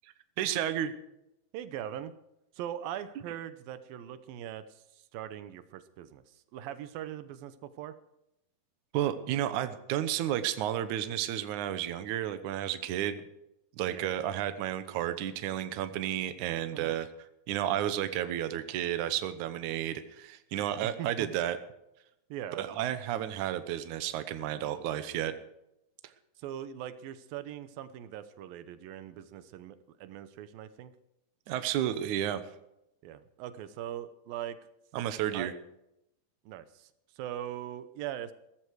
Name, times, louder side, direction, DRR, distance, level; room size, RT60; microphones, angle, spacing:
voice 1, 0.4-0.9 8.9-13.2 13.8-17.1 17.5-21.6 22.6-25.3 31.5-32.4 34.9-35.5, right 11 dB, 70° right, 11 dB, 2.3 m, -32 dB
voice 2, 1.5-2.1 2.5-8.0 13.9-14.1 16.7-16.9 21.0-21.3 22.3-22.6 26.4-30.9 33.0-34.6 35.3-35.6 36.5-38.3, right 11 dB, 85° right, 12 dB, 2.7 m, -41 dB
16.0 x 14.5 x 4.7 m, 0.85 s
omnidirectional pair, 4.0 m